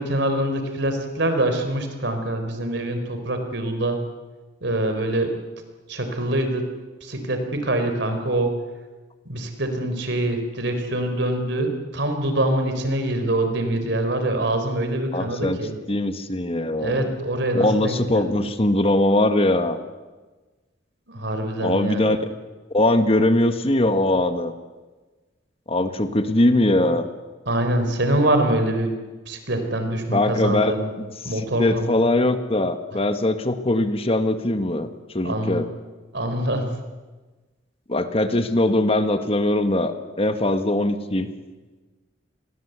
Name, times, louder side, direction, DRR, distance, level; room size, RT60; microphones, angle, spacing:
voice 1, 0.0-4.0 4.6-5.3 5.9-6.6 7.0-8.5 9.2-15.8 16.8-18.4 21.1-22.1 27.5-28.9 29.3-30.9 31.2-31.9 35.2-35.6 36.1-36.7, right 1 dB, 65° right, 7 dB, 4.3 m, -24 dB
voice 2, 15.1-15.6 15.9-17.1 17.5-19.8 21.6-22.2 22.7-24.5 25.7-27.1 30.1-31.1 31.3-34.9 35.1-35.7 37.9-41.3, left 1 dB, 30° left, 9 dB, 1.6 m, -21 dB
29.5 x 21.5 x 8.2 m, 1.3 s
head